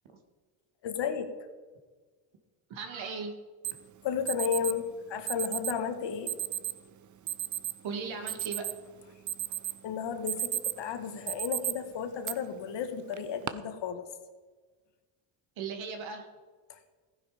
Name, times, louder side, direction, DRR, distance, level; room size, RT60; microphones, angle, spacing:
voice 1, 0.8-1.3 4.0-6.4 9.8-14.1 16.7-16.8, left 7 dB, 60° left, 8 dB, 1.8 m, -33 dB
voice 2, 2.7-3.3 7.8-8.7 15.6-16.3, right 5 dB, 65° right, 5 dB, 2.4 m, -37 dB
Alarm, 3.6-3.7 4.3-4.7 5.3-5.8 6.3-6.7 7.3-7.7 8.1-8.9 9.3-9.8 10.1-10.8 11.3-11.7 12.2-12.3 13.1-13.5, right 12 dB, 35° right, 0.8 m, -33 dB
15.5 x 10.0 x 5.2 m, 1.4 s
cardioid pair, 110°, 50 cm